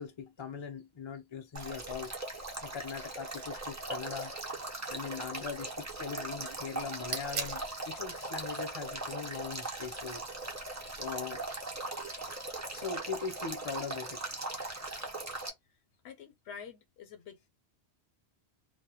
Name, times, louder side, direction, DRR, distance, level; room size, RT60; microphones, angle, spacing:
voice 1, 0.0-2.1 2.6-4.3 4.9-10.2 11.0-11.4 12.7-14.2 14.9-15.0, left 6 dB, 35° left, 0.5 m, -40 dB
Male speech man speaking / Stream / Trickle dribble, 1.5-15.5, right 2 dB, 25° right, 0.4 m, -39 dB
sound 1, 6.9-11.9, right 5 dB, 55° right, 0.8 m, -45 dB
voice 2, 16.0-17.5, left 7 dB, 75° left, 0.8 m, -47 dB
2.2 x 2.1 x 2.8 m
omnidirectional pair, 1.1 m